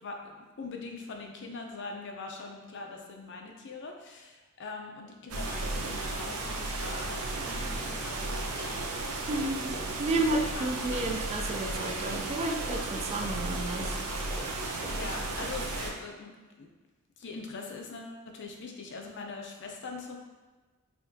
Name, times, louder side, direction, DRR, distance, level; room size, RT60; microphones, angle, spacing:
voice 1, 0.0-8.7 10.1-10.9 14.9-16.7 17.2-20.2, left 3 dB, 55° left, 2 dB, 0.6 m, -42 dB
sound 1, 5.3-15.9, right 2 dB, 85° right, 0.6 m, -34 dB
sound 2, 7.9-8.2 8.6-8.8 9.1-10.0 10.3-15.8, left 1 dB, 10° left, 0.8 m, -46 dB
voice 2, 9.3-14.0, right 2 dB, 30° right, 3 dB, 0.3 m, -32 dB
5.8 x 2.7 x 2.7 m, 1.3 s
head